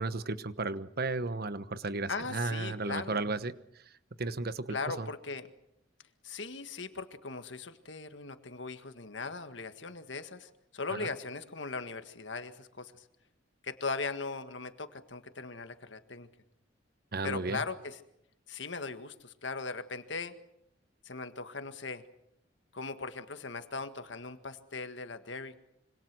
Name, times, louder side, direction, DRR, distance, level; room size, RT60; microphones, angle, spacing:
voice 1, 0.0-3.6 4.2-5.1 10.9-11.1 17.1-17.6, right 3 dB, 55° right, 14 dB, 1.1 m, -34 dB
voice 2, 2.1-3.2 4.7-5.5 6.2-13.0 13.6-16.3 17.2-18.0 18.5-20.3 21.0-22.0 22.7-25.6, left 4 dB, 70° left, 9 dB, 1.9 m, -39 dB
26.5 x 25.0 x 6.2 m, 0.77 s
head